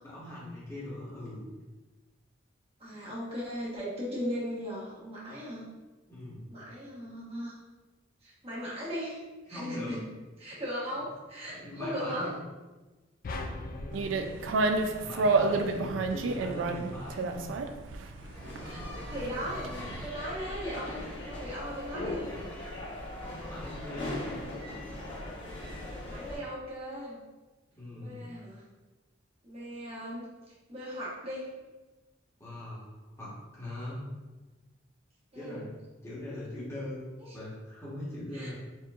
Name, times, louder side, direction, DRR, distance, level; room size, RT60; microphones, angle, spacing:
voice 1, 0.0-1.4 6.1-6.5 9.5-10.0 11.5-12.4 13.5-14.5 15.0-17.5 18.4-18.9 23.5-24.4 27.7-28.2 32.4-34.1 35.3-35.7 36.0-38.5, left 1 dB, 15° left, -8 dB, 1.2 m, -41 dB
voice 2, 2.8-5.7 6.5-7.5 8.2-9.2 9.5-10.0 10.4-12.3 18.6-22.4 26.0-27.2 27.9-28.6 29.4-30.3 30.7-31.5 35.3-35.7 37.2-37.4 38.3-38.5, equal, 30° right, -7 dB, 1.2 m, -38 dB
sound 1, 13.2-15.7, left 2 dB, 45° left, 0.3 m, -41 dB
sound 2, 13.9-20.1, right 3 dB, 75° right, 0.3 m, -30 dB
sound 3, 18.2-26.4, left 1 dB, 70° left, 1.2 m, -39 dB
4.5 x 2.9 x 2.4 m, 1.2 s
head